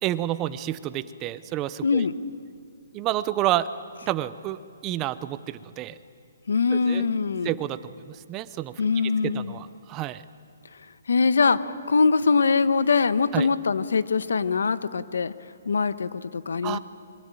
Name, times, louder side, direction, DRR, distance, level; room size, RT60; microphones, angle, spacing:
voice 1, 0.0-2.0 2.9-3.7 4.0-6.0 6.7-7.1 7.4-7.8 8.1-10.2 13.3-13.5 16.6-16.8, right 14 dB, 15° right, 14 dB, 0.6 m, -29 dB
voice 2, 1.8-2.2 6.5-7.5 8.8-9.6 11.1-15.3 15.6-16.8, left 4 dB, 85° left, 14 dB, 1.2 m, -23 dB
25.5 x 22.5 x 9.0 m, 2.4 s
hypercardioid pair, 175°, 0 cm